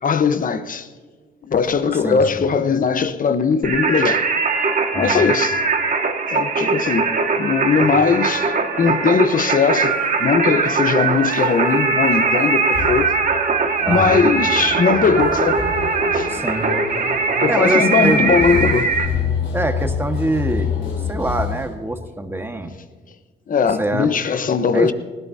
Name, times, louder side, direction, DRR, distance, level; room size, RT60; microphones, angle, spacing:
voice 1, 0.0-0.9 1.4-4.2 5.0-5.6 6.3-13.2 13.9-15.7 16.1-16.3 17.4-18.9 23.5-24.9, left 5 dB, 45° left, 1.0 m, -19 dB
voice 2, 2.0-2.4 4.9-5.2 7.8-7.9 13.8-14.2 16.3-16.6 17.1-17.2 17.5-18.5 19.5-20.7 21.1-22.8 23.8-24.2 24.7-24.9, right 1 dB, 10° right, 1.6 m, -24 dB
Singing, 3.6-19.1, right 4 dB, 45° right, 1.9 m, -20 dB
sound 1, 12.7-21.7, left 6 dB, 70° left, 3.6 m, -27 dB
19.5 x 17.0 x 2.8 m
cardioid pair, 90°, 20 cm